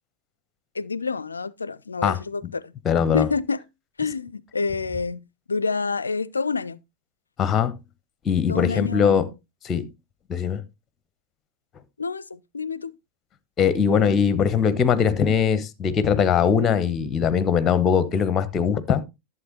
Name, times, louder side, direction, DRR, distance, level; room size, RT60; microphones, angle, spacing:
voice 1, 0.7-2.7 3.1-3.6 4.0-6.8 8.5-9.3 12.0-12.9, left 4 dB, 75° left, 0.4 m, -28 dB
voice 2, 2.8-3.3 7.4-7.7 8.2-9.3 9.6-9.9 10.3-10.6 13.6-19.0, left 7 dB, 25° left, 1.0 m, -21 dB
11.5 x 7.5 x 3.0 m
figure-of-eight pair, 90°, 0 cm